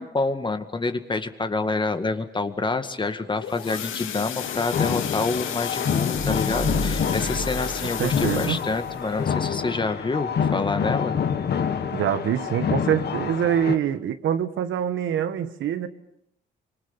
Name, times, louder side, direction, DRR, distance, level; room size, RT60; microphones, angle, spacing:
voice 1, 0.0-11.2, left 3 dB, 25° left, 9 dB, 2.0 m, -27 dB
sound 1, 3.1-11.7 12.2-12.4 12.7-12.8 13.3-13.4, left 9 dB, 90° left, 2.2 m, -35 dB
sound 2, 4.4-13.8, left 7 dB, 55° left, 2.1 m, -27 dB
sound 3, 6.1-9.0, right 1 dB, 25° right, 2.1 m, -34 dB
voice 2, 7.8-8.6 11.9-15.9, right 9 dB, 75° right, 10 dB, 1.6 m, -25 dB
25.5 x 25.5 x 7.2 m, 0.72 s
cardioid pair, 90°, 20 cm